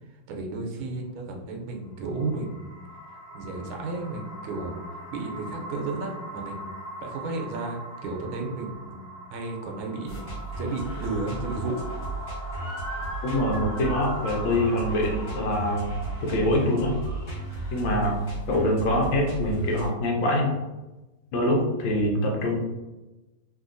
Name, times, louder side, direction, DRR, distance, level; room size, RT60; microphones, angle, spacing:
voice 1, 0.3-2.8 3.1-11.8, right 3 dB, 85° right, 2 dB, 1.5 m, -33 dB
sound 1, 1.8-19.0, equal, 10° left, 0.9 m, -41 dB
sound 2, 10.1-19.9, right 3 dB, 50° left, 1.1 m, -35 dB
Motor vehicle (road) / Siren, 12.5-17.8, right 2 dB, 50° right, 0.6 m, -43 dB
voice 2, 13.2-15.9 16.3-16.9 17.7-18.2 18.5-20.5 21.3-22.6, left 1 dB, 70° left, 0 dB, 1.3 m, -24 dB
3.3 x 2.7 x 2.5 m, 1.1 s
omnidirectional pair, 2.3 m